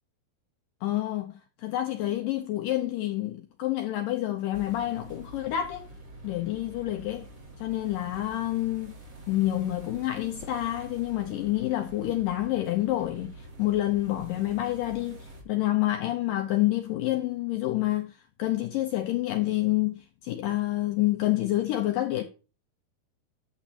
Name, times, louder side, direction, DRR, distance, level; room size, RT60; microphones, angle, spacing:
voice 1, 0.8-5.9 6.2-7.3 7.6-8.9 9.3-22.2, left 15 dB, 90° left, 1.9 m, -28 dB
sound 1, 4.5-15.4, right 2 dB, 35° right, 1.3 m, -46 dB
11.5 x 7.2 x 2.8 m
omnidirectional pair, 4.7 m